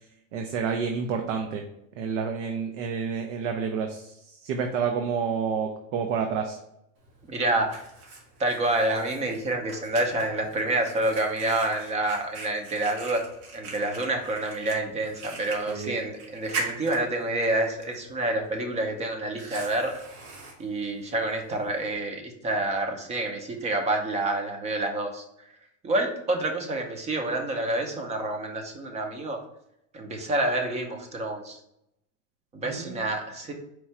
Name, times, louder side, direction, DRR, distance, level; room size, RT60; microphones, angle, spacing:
voice 1, 0.3-1.6 2.0-4.1 4.4-6.6 15.7-16.0 32.6-33.1, right 6 dB, 70° right, 4 dB, 0.7 m, -29 dB
Fire, 7.0-21.9, right 3 dB, 85° right, 1.5 m, -42 dB
voice 2, 7.3-7.8 8.4-13.2 13.5-19.9 20.6-25.2 25.8-29.4 29.9-31.6 32.5-33.5, right 2 dB, 20° right, 4 dB, 0.6 m, -28 dB
4.5 x 2.4 x 4.2 m, 0.80 s
supercardioid pair, 145°, 38 cm